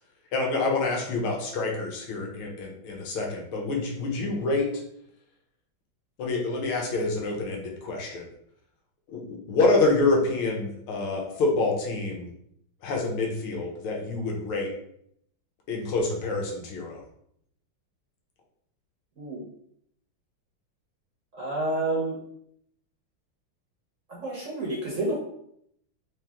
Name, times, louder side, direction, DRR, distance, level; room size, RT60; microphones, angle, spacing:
voice 1, 0.3-4.7 6.2-8.3 9.1-12.3 12.8-14.7 15.7-17.0, left 3 dB, 80° left, 0 dB, 1.8 m, -27 dB
voice 2, 21.3-22.2 24.1-25.2, right 2 dB, 45° right, -4 dB, 1.1 m, -29 dB
4.1 x 3.0 x 3.5 m, 0.71 s
omnidirectional pair, 2.3 m